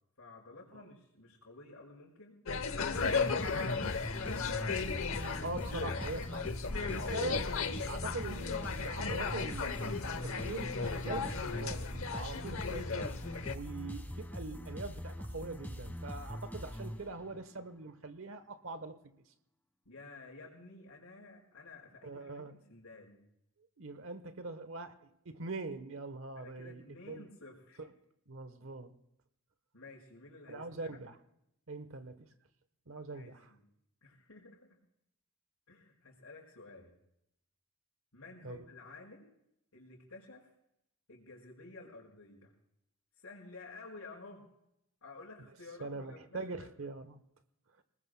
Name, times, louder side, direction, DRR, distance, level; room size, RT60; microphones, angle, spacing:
voice 1, 0.2-2.4 3.0-4.1 19.8-23.2 26.3-27.9 29.7-31.0 33.1-33.6 34.0-34.8 35.7-37.0 38.1-39.3 39.7-40.5 41.1-42.5 43.2-44.4 45.0-46.9, left 3 dB, 85° left, 4.6 m, -52 dB
sound 1, 2.5-13.6, left 4 dB, 70° left, 0.9 m, -35 dB
sound 2, 2.9-17.5, equal, 10° left, 1.3 m, -43 dB
voice 2, 5.4-6.5 6.9-7.5 7.9-13.2 13.5-19.1 22.0-22.5 23.8-25.0 25.2-27.3 28.3-28.9 30.5-31.2 31.7-32.3 32.9-33.5 38.4-38.6 45.8-47.2 47.8-47.9, right 3 dB, 65° right, 1.0 m, -43 dB
29.0 x 19.5 x 2.2 m
head